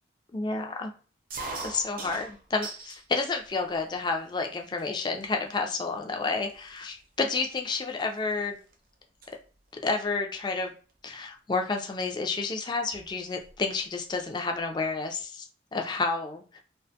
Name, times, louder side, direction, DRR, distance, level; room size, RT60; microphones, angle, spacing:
voice 1, 0.3-0.9 1.6-8.6 9.8-10.7 11.0-16.6, left 3 dB, 25° left, 3 dB, 0.3 m, -30 dB
sound 1, 1.3-3.0 3.5-4.1 4.8-4.9 5.1-5.5 6.2-6.3 6.5-8.7 9.0-9.3 10.7-10.9 12.0-12.1 12.3-12.4 12.7-13.6, right 3 dB, 50° right, 0.5 m, -41 dB
2.4 x 2.2 x 2.7 m, 0.38 s
head